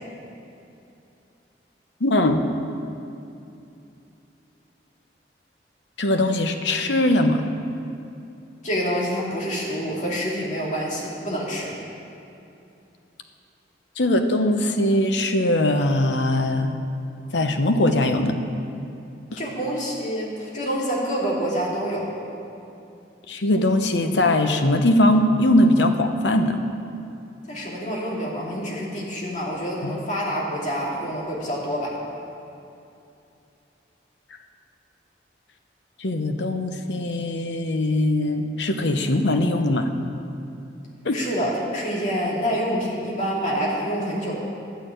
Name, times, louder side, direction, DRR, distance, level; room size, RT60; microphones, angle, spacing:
voice 1, 2.0-2.4 6.0-7.4 14.0-16.8 17.3-18.4 19.3-19.4 23.3-26.6 29.8-29.9 36.0-39.9 41.0-41.2, left 1 dB, 85° left, 6 dB, 0.9 m, -21 dB
voice 2, 8.6-11.7 19.4-22.1 27.5-32.0 41.1-44.4, equal, 45° left, -5 dB, 2.7 m, -27 dB
11.5 x 6.6 x 9.1 m, 2.7 s
head